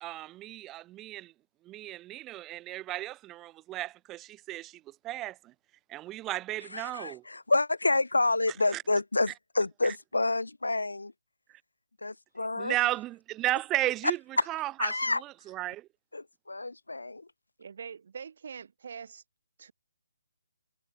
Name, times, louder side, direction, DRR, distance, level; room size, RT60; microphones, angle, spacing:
voice 1, 0.0-1.3 1.6-5.5 5.9-7.2 8.7-8.8 9.8-10.0 12.6-15.9, right 16 dB, 15° right, 0.5 m, -34 dB
voice 2, 6.7-11.1 12.0-12.8 14.8-15.2 16.1-17.2, left 2 dB, 85° left, 1.3 m, -29 dB
voice 3, 17.6-19.2 19.6-19.7, right 6 dB, 55° right, 1.9 m, -43 dB
figure-of-eight pair, 150°, 0 cm